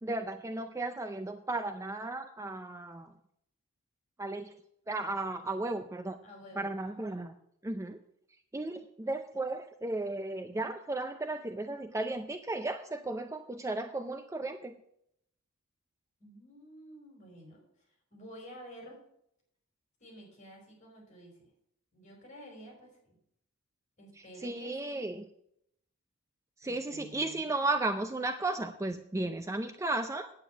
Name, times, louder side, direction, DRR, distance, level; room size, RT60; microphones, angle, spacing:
voice 1, 0.0-3.1 4.2-4.5 4.9-6.2 6.6-7.3 7.6-8.0 8.5-14.7 24.4-25.2 26.6-30.3, right 2 dB, 15° right, 8 dB, 0.4 m, -34 dB
voice 2, 6.2-7.2 16.2-17.6 18.1-19.0 20.0-21.5 21.9-23.1 24.0-25.1 26.6-27.9, equal, 35° left, 0 dB, 4.9 m, -51 dB
9.0 x 8.8 x 6.0 m, 0.74 s
head